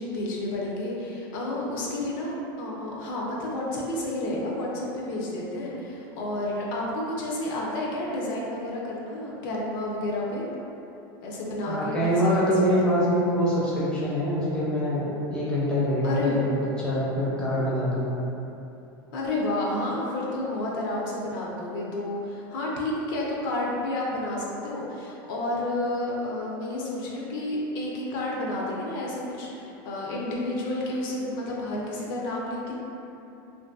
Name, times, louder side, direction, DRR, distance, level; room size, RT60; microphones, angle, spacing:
voice 1, 0.0-10.4 11.2-12.5 12.8-12.9 16.0-16.4 19.1-32.8, left 1 dB, 60° left, -4 dB, 0.5 m, -30 dB
voice 2, 11.7-18.1, equal, 5° left, -9 dB, 0.5 m, -24 dB
2.6 x 2.5 x 2.3 m, 2.9 s
supercardioid pair, 155°, 12 cm